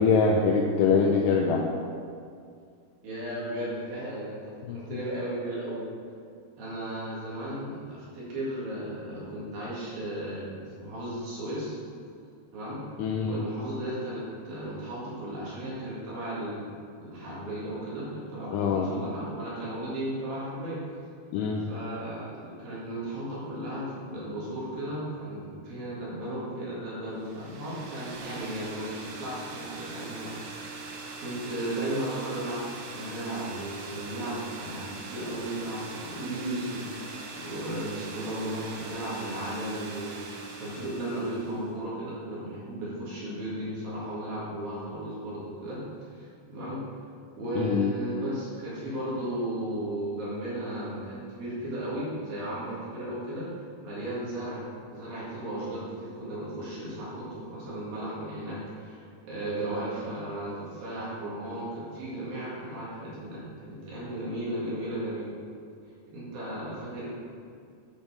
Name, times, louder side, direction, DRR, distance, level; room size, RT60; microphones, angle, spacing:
voice 1, 0.0-1.7 4.7-5.0 13.0-13.5 18.5-18.9 21.3-21.7 47.6-47.9, left 5 dB, 90° left, 0 dB, 2.4 m, -24 dB
voice 2, 3.0-5.8 6.6-11.7 12.5-12.8 13.2-16.7 17.0-20.8 21.7-30.3 30.6-30.9 31.2-45.8 46.1-46.8 47.4-53.5 53.8-65.3 66.1-67.1, right 1 dB, 55° right, -8 dB, 3.4 m, -35 dB
sound 1, 27.2-41.7, right 3 dB, 85° right, 3.4 m, -41 dB
9.2 x 5.4 x 5.0 m, 2.3 s
omnidirectional pair, 5.4 m